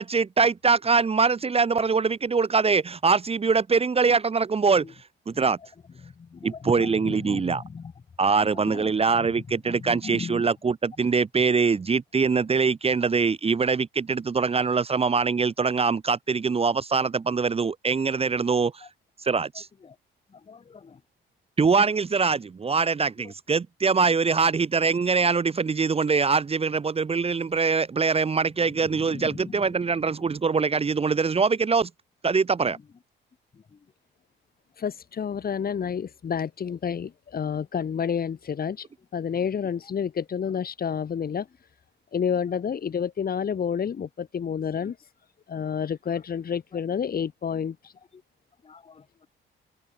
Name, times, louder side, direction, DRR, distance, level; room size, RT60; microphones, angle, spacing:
voice 1, 0.0-4.8 5.3-5.6 6.4-7.6 8.2-18.7 19.2-19.7 21.6-31.9 32.2-32.8, right 5 dB, 30° right, 1.0 m, -23 dB
voice 2, 6.0-7.9 8.6-8.9 9.2-9.3 9.7-10.4 18.5-18.6 19.8-19.9 20.5-20.6 29.1-29.6 48.6-49.3, left 5 dB, 30° left, 0.9 m, -39 dB
voice 3, 34.8-38.9 39.1-41.5 42.1-45.0 45.5-47.9, left 7 dB, 50° left, 3.8 m, -29 dB
cardioid pair, 90°, 20 cm